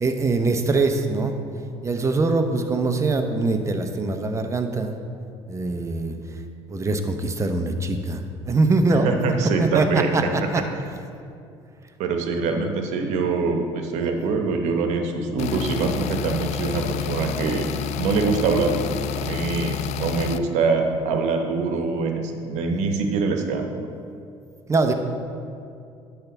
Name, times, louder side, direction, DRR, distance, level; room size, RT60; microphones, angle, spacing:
voice 1, 0.0-1.3 1.8-4.9 5.5-6.2 6.7-9.1 9.6-10.6 12.5-12.6 24.7-24.9, right 3 dB, 25° right, 6 dB, 0.8 m, -23 dB
voice 2, 8.9-10.5 12.0-17.7 18.0-23.9, right 4 dB, 75° right, 4 dB, 1.0 m, -24 dB
sound 1, 15.4-20.4, left 10 dB, 70° left, 0.4 m, -30 dB
10.0 x 3.4 x 7.1 m, 2.5 s
supercardioid pair, 85°, 12 cm